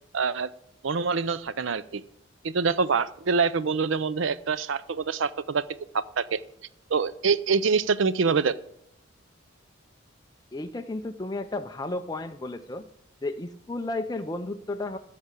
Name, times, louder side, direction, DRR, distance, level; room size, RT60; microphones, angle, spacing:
voice 1, 0.1-0.5 0.8-2.0 2.4-6.4 6.9-8.5, right 5 dB, 65° right, 17 dB, 0.5 m, -25 dB
voice 2, 10.5-12.8 13.2-15.0, left 2 dB, 20° left, 6 dB, 0.4 m, -33 dB
13.5 x 5.0 x 8.3 m, 0.73 s
head